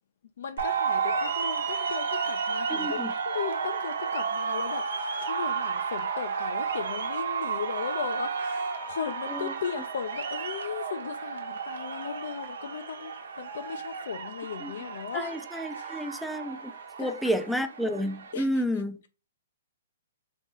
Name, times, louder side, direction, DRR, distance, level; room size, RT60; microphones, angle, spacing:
voice 1, 0.4-15.4 15.7-16.1 17.0-17.4 18.3-18.6, left 7 dB, 70° left, 0.4 m, -37 dB
sound 1, 0.6-18.3, right 5 dB, 80° right, 0.9 m, -32 dB
voice 2, 2.7-3.1 9.3-9.5 14.6-14.7 15.1-16.7 17.0-19.0, equal, ahead, 0.4 m, -30 dB
3.8 x 3.0 x 3.7 m
hypercardioid pair, 145°, 0 cm